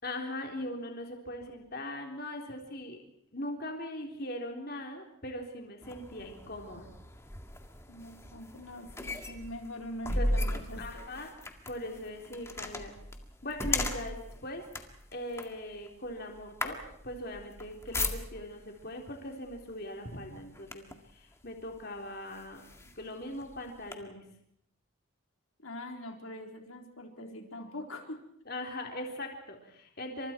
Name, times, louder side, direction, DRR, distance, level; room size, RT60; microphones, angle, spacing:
voice 1, 0.0-3.0 3.3-6.9 10.2-10.3 10.8-11.3 11.7-12.9 13.4-14.6 15.1-16.8 17.0-24.3 28.5-30.3, left 1 dB, 45° left, 2 dB, 3.9 m, -40 dB
sound 1, 5.8-18.6 19.5-19.7 20.1-21.1 21.7-21.8 22.3-23.9, left 1 dB, 15° left, 1.9 m, -37 dB
voice 2, 7.9-11.1 25.6-28.2, left 1 dB, 80° left, 2 dB, 4.1 m, -43 dB
29.5 x 26.5 x 4.6 m, 0.70 s
head